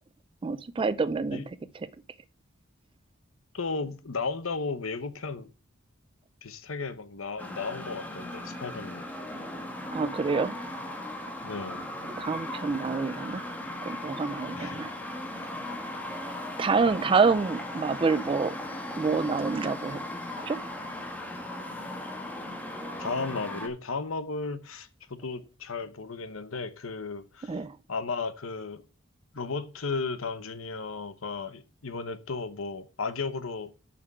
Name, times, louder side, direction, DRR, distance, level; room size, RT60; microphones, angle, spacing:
voice 1, 0.4-1.4 9.9-10.5 12.1-13.4 13.8-14.9 16.6-18.6 19.0-20.0 20.4-20.6 27.5-27.8, right 4 dB, 25° right, 0.3 m, -27 dB
voice 2, 3.5-5.5 6.4-9.1 11.4-11.8 14.5-14.8 15.4-15.5 23.0-27.5 27.9-28.8 29.3-33.7, left 4 dB, 85° left, 1.0 m, -34 dB
sound 1, 7.4-23.7, left 1 dB, 10° left, 1.5 m, -37 dB
6.9 x 5.8 x 6.9 m
head